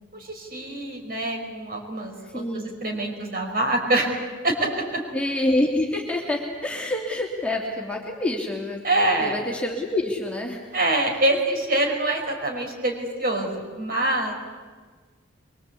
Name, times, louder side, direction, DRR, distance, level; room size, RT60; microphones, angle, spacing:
voice 1, 0.1-4.1 4.4-5.0 8.8-9.4 10.7-14.3, right 1 dB, 45° right, 1 dB, 5.1 m, -25 dB
voice 2, 2.2-2.7 5.1-8.8 9.2-10.8, left 1 dB, 5° left, -1 dB, 2.8 m, -27 dB
24.0 x 24.0 x 8.5 m, 1.5 s
head